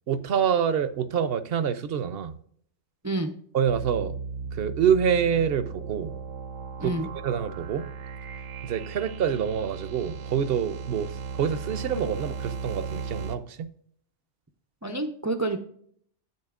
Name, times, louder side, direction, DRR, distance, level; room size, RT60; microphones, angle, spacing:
voice 1, 0.1-2.3 3.5-4.2 4.5-6.1 6.8-7.9 8.6-13.7, right 8 dB, 65° right, 0.7 m, -26 dB
sound 1, 3.7-13.4, right 5 dB, 80° right, 1.0 m, -36 dB
voice 2, 14.8-15.6, right 2 dB, 30° right, 0.3 m, -28 dB
10.5 x 8.3 x 2.4 m
omnidirectional pair, 1.2 m